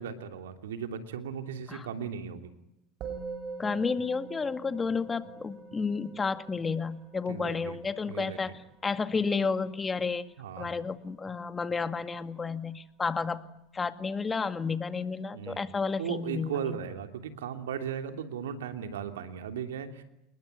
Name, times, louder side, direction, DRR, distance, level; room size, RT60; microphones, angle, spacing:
voice 1, 0.0-2.5 7.3-7.8 8.1-8.4 10.4-10.7 15.3-15.6 16.0-20.0, right 8 dB, 85° right, 8 dB, 3.0 m, -36 dB
Musical instrument, 3.0-12.5, right 4 dB, 50° right, 6.4 m, -45 dB
voice 2, 3.6-10.2 10.6-13.4 13.7-16.8, left 4 dB, 20° left, 11 dB, 2.1 m, -31 dB
28.5 x 21.0 x 9.5 m, 0.82 s
hypercardioid pair, 85°, 0 cm